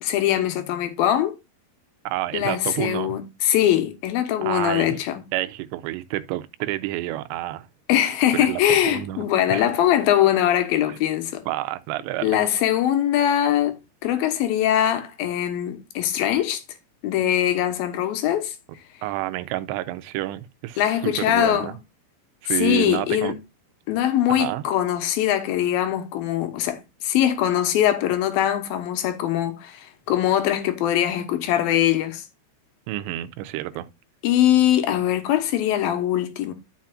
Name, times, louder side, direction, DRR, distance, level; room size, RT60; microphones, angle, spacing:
voice 1, 0.0-1.4 2.3-5.2 7.9-11.4 12.2-16.6 17.0-18.5 20.8-21.7 22.5-23.4 23.9-32.2 34.2-36.5, left 11 dB, 70° left, 2.6 m, -22 dB
voice 2, 2.1-3.1 4.4-5.0 5.3-7.7 8.3-9.7 10.9-11.0 11.5-12.4 19.0-21.7 22.4-23.3 24.3-24.6 32.9-33.9, right 16 dB, 85° right, 2.9 m, -29 dB
12.0 x 5.8 x 2.4 m
omnidirectional pair, 4.9 m